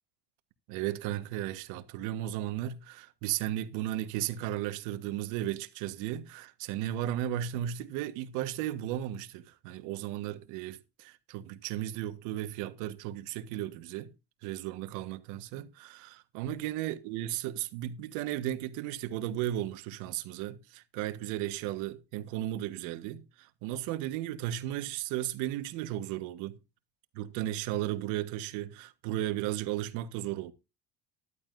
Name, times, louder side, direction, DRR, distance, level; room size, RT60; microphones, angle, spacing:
voice 1, 0.7-14.1 14.4-26.6 27.1-30.5, right 13 dB, 80° right, 1.5 m, -35 dB
14.0 x 11.5 x 2.6 m
supercardioid pair, 100°, 30 cm